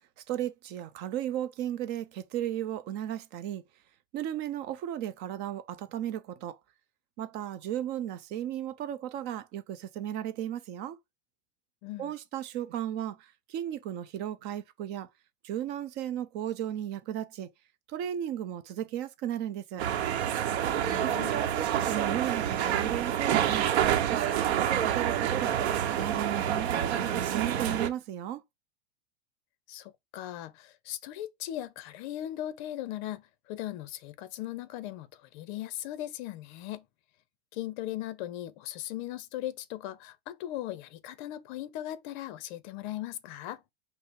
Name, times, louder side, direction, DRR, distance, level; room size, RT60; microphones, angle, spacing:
voice 1, 0.3-3.6 4.1-6.6 7.2-11.0 12.0-15.1 15.4-17.5 17.9-19.9 21.0-23.7 24.1-25.5 25.9-28.4, right 11 dB, 30° right, 0.6 m, -35 dB
voice 2, 11.8-12.1 20.7-21.3 29.7-36.9 37.5-43.6, left 13 dB, 45° left, 0.7 m, -38 dB
sound 1, 19.8-27.9, right 10 dB, 85° right, 0.9 m, -28 dB
5.5 x 2.1 x 4.5 m
supercardioid pair, 155°, 32 cm